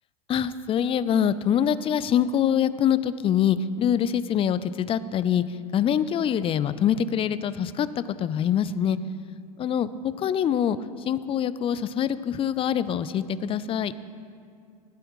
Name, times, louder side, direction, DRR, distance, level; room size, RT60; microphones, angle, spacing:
voice 1, 0.3-5.4 5.7-7.9 8.2-9.0 9.6-9.9 10.2-10.8 11.1-13.9, left 9 dB, 30° left, 15 dB, 0.5 m, -24 dB
17.0 x 12.0 x 3.1 m, 2.3 s
hypercardioid pair, 95°, 19 cm